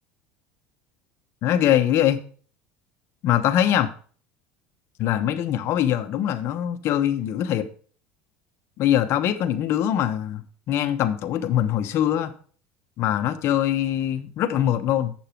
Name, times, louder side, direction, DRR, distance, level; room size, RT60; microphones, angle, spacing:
voice 1, 1.4-2.2 3.2-3.9 5.0-7.7 8.8-12.3 13.0-15.1, left 11 dB, 50° left, 1.0 m, -23 dB
8.0 x 6.9 x 4.5 m
supercardioid pair, 120°, 6 cm